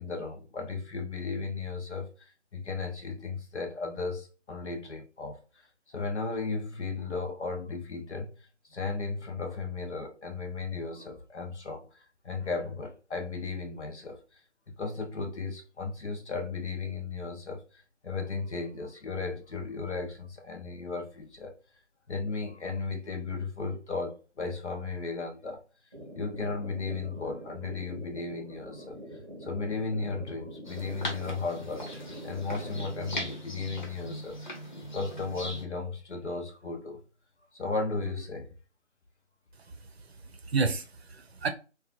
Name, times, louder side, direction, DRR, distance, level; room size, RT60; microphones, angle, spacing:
voice 1, 0.0-5.4 5.9-8.4 8.7-14.4 14.7-21.6 22.1-25.6 26.2-34.4 34.9-37.0 37.5-38.5, left 4 dB, 70° left, 0.7 m, -35 dB
sound 1, 25.9-33.3, equal, 25° right, 0.7 m, -44 dB
sound 2, 30.6-35.6, equal, 40° left, 0.9 m, -39 dB
voice 2, 39.7-41.5, right 4 dB, 60° right, 0.6 m, -32 dB
3.0 x 2.3 x 2.4 m
figure-of-eight pair, 155°, 36 cm